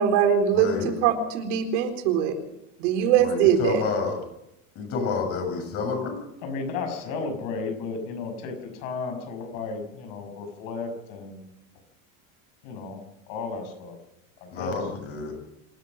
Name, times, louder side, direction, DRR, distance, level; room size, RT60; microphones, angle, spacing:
voice 1, 0.0-2.3 2.8-3.9, right 8 dB, 65° right, 5 dB, 4.2 m, -22 dB
voice 2, 0.6-0.9 3.2-4.1 4.8-6.2 14.5-15.3, left 4 dB, 35° left, 4 dB, 7.5 m, -29 dB
voice 3, 6.4-11.4 12.6-13.0 13.3-14.0 14.4-14.9, left 4 dB, 55° left, 6 dB, 6.3 m, -33 dB
26.5 x 13.5 x 7.5 m, 0.82 s
supercardioid pair, 165°, 39 cm